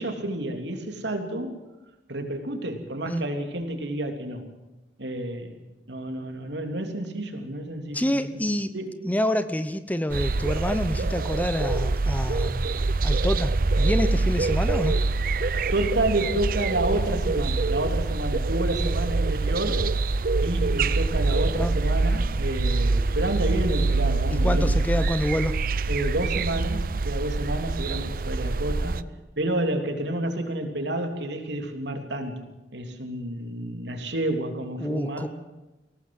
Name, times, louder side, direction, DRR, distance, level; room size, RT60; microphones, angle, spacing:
voice 1, 0.0-1.6 2.1-4.5 5.0-8.5 8.7-8.9 15.7-19.8 20.4-24.7 25.9-29.0 29.4-35.3, right 1 dB, 85° right, 5 dB, 3.2 m, -30 dB
voice 2, 7.9-8.7 9.0-12.7 13.0-15.0 21.6-21.7 24.3-25.5 34.8-35.3, left 1 dB, 10° left, 11 dB, 0.9 m, -27 dB
sound 1, 10.1-29.0, right 3 dB, 55° right, 0.6 m, -25 dB
21.5 x 17.5 x 7.8 m, 1.1 s
head